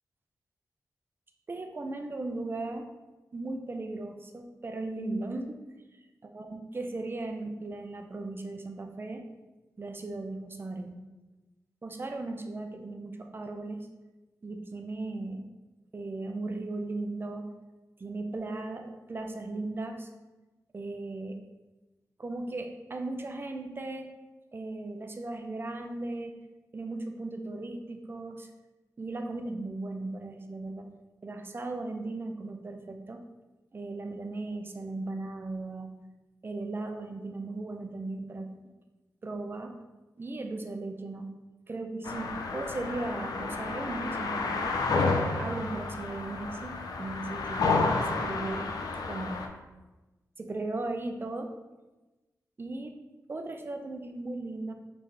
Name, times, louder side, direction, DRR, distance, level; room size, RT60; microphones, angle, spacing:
voice 1, 1.5-2.9 3.3-5.6 6.3-9.2 9.8-11.0 11.8-13.9 14.4-15.4 15.9-17.5 18.0-20.1 20.7-21.4 22.2-24.1 24.5-26.4 26.7-28.5 29.0-30.9 31.2-33.3 33.7-35.9 36.4-38.5 39.2-39.8 40.2-41.3 41.7-44.7 45.4-48.7 49.1-49.4 50.4-51.5 52.6-52.9 53.3-54.7, right 2 dB, 35° right, 4 dB, 0.5 m, -37 dB
sound 1, 42.0-49.5, left 3 dB, 80° left, 0.4 m, -30 dB
4.0 x 3.3 x 3.3 m, 1.1 s
cardioid pair, 80°, 7 cm